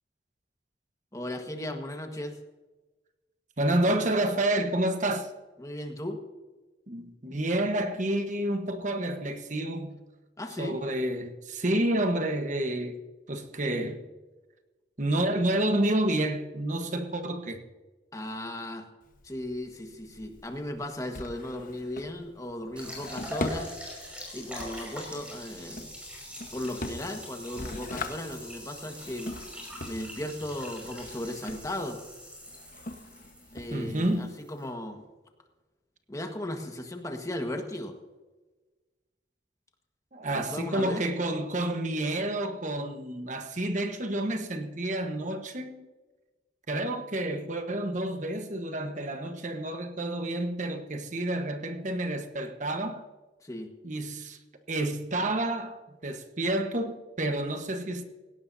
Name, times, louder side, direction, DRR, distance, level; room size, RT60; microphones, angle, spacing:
voice 1, 1.1-2.4 5.6-6.2 10.4-10.8 18.1-18.9 19.2-25.9 26.5-29.4 29.8-32.0 33.5-35.0 36.1-38.0 40.3-41.1 53.4-53.7, left 1 dB, 20° left, 1.5 m, -36 dB
voice 2, 3.6-5.3 6.9-10.0 10.6-13.0 13.3-14.0 15.0-17.6 33.7-34.3 40.1-45.8 46.7-53.1 53.8-54.4 54.7-58.1, right 1 dB, 45° right, 1.3 m, -29 dB
Drawer open or close, 19.0-34.2, left 2 dB, 50° left, 1.3 m, -42 dB
sound 1, 22.8-34.7, equal, 5° right, 5.6 m, -43 dB
17.5 x 17.5 x 2.8 m
head